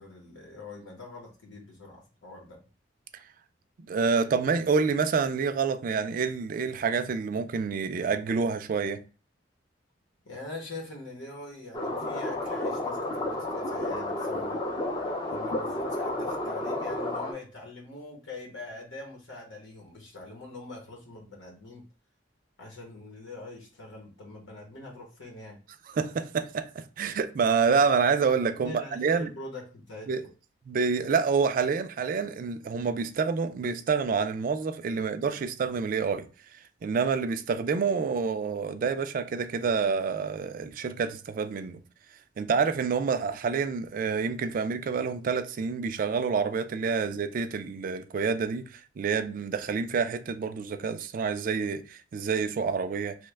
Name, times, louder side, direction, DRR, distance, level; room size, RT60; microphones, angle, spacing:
voice 1, 0.0-2.6 10.2-14.6 15.3-21.8 22.6-25.6 28.5-30.2 35.3-35.4, left 2 dB, 85° left, 0.9 m, -43 dB
voice 2, 3.8-9.0 25.9-29.3 30.1-30.2 30.7-36.3 36.8-41.8 42.4-53.2, right 5 dB, 45° right, 0.3 m, -28 dB
sound 1, 11.7-17.3, left 1 dB, 25° left, 0.5 m, -31 dB
3.0 x 2.1 x 3.3 m
head